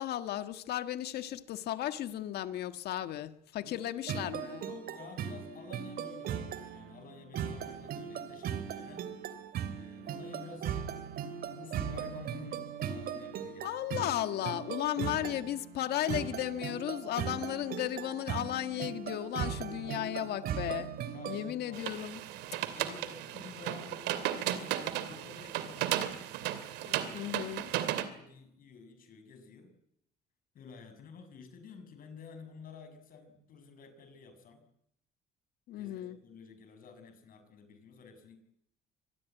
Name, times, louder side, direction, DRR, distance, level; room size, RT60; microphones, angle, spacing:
voice 1, 0.0-4.7 13.6-20.9 21.3-22.2 27.1-27.6 35.7-36.2, left 12 dB, 75° left, 10 dB, 1.7 m, -35 dB
voice 2, 3.6-4.0 4.6-9.1 9.6-10.7 11.4-13.8 14.9-15.4 19.5-20.1 21.1-21.9 22.7-26.0 26.8-27.4 27.8-29.7 30.5-34.6 35.8-38.4, left 5 dB, 55° left, 9 dB, 6.6 m, -51 dB
sound 1, 4.1-21.5, right 8 dB, 65° right, 3.0 m, -38 dB
sound 2, 21.7-28.0, right 12 dB, 90° right, 2.7 m, -35 dB
25.5 x 20.5 x 9.3 m, 0.75 s
cardioid pair, 110°, 17 cm